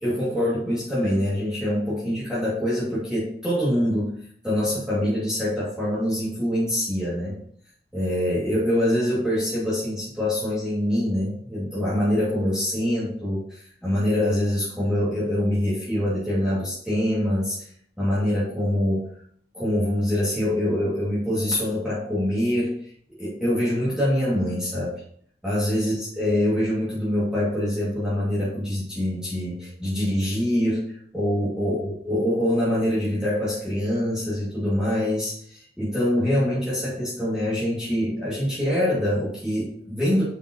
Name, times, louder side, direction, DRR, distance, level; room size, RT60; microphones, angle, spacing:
voice 1, 0.0-4.1 4.4-7.4 7.9-17.7 18.0-19.1 19.5-22.8 23.2-24.9 25.4-40.2, left 1 dB, 5° right, -10 dB, 2.3 m, -24 dB
7.1 x 5.4 x 3.0 m, 0.62 s
head